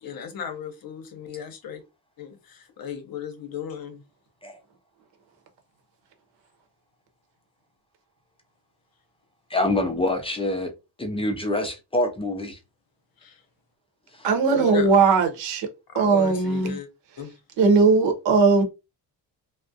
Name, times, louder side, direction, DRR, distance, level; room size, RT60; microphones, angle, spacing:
voice 1, 0.0-1.8 2.2-4.0 13.2-13.4 14.5-15.0 15.9-16.9 17.2-17.3, left 8 dB, 55° left, 0.7 m, -36 dB
voice 2, 9.5-10.7 11.0-12.6, left 1 dB, 15° left, 0.4 m, -25 dB
voice 3, 14.2-15.7 15.9-16.8 17.6-18.6, right 4 dB, 85° right, 0.8 m, -19 dB
2.3 x 2.0 x 2.6 m
cardioid pair, 120°, 42 cm